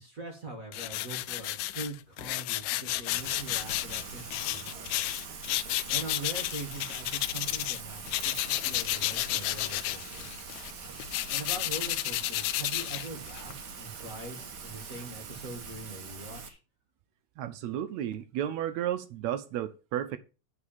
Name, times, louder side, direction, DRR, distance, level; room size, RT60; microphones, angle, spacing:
voice 1, 0.0-4.9 5.9-8.4 8.6-10.3 11.3-16.6, right 2 dB, 35° right, 1.5 m, -42 dB
sound 1, 0.7-7.8 8.1-13.5, left 16 dB, 90° left, 2.1 m, -32 dB
Rain, 3.1-16.5, right 5 dB, 60° right, 1.1 m, -43 dB
voice 2, 17.4-20.2, right 11 dB, 75° right, 1.8 m, -33 dB
8.4 x 5.0 x 7.0 m
omnidirectional pair, 3.6 m